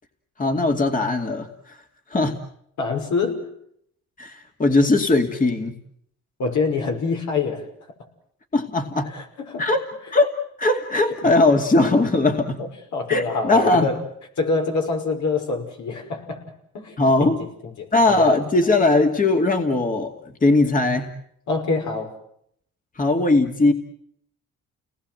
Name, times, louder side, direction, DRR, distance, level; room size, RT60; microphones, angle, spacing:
voice 1, 0.4-1.8 2.1-2.4 4.2-5.7 8.5-9.1 9.6-9.8 10.1-12.6 13.1-13.9 17.0-17.4 17.9-21.1 23.0-23.7, left 2 dB, 25° left, 4 dB, 2.4 m, -19 dB
voice 2, 2.8-3.5 6.4-7.7 9.0-9.7 11.2-11.3 12.6-14.0 14.4-16.4 16.7-18.4 21.5-22.2, left 4 dB, 70° left, 2 dB, 5.9 m, -26 dB
30.0 x 19.5 x 7.8 m, 0.72 s
cardioid pair, 90°, 30 cm